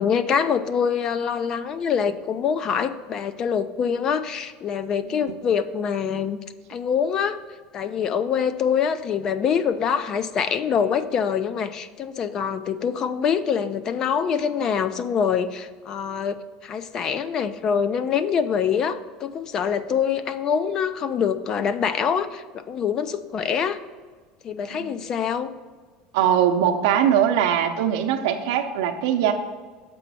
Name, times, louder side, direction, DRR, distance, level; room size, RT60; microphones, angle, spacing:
voice 1, 0.0-6.4 6.7-7.4 7.7-16.4 16.6-23.8 24.4-25.5, left 7 dB, 25° left, 12 dB, 0.4 m, -25 dB
voice 2, 26.1-29.3, right 9 dB, 80° right, 4 dB, 0.7 m, -21 dB
6.8 x 5.0 x 5.5 m, 1.4 s
cardioid pair, 175°, 2 cm